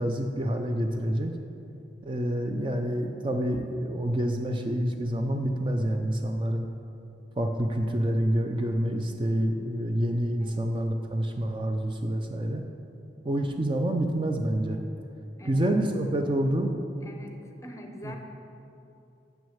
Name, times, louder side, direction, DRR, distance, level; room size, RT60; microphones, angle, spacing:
voice 1, 0.0-1.3 2.0-6.7 7.4-12.6 13.2-14.8 15.4-16.8 18.0-18.2, right 1 dB, 25° right, 4 dB, 0.4 m, -27 dB
voice 2, 15.4-15.7 17.0-18.2, left 1 dB, 15° left, 3 dB, 0.8 m, -44 dB
7.3 x 6.3 x 7.1 m, 2.7 s
head